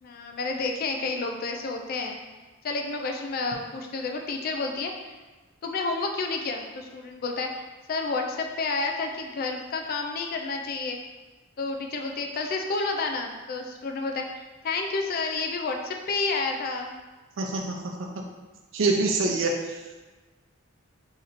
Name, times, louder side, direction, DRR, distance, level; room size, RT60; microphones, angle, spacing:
voice 1, 0.0-2.2 2.6-5.1 5.6-7.6 7.9-11.0 11.6-17.0, left 3 dB, 45° left, 3 dB, 0.4 m, -30 dB
voice 2, 17.4-18.2 18.7-19.5, right 3 dB, 65° right, 1 dB, 0.5 m, -25 dB
2.9 x 2.7 x 4.0 m, 1.2 s
head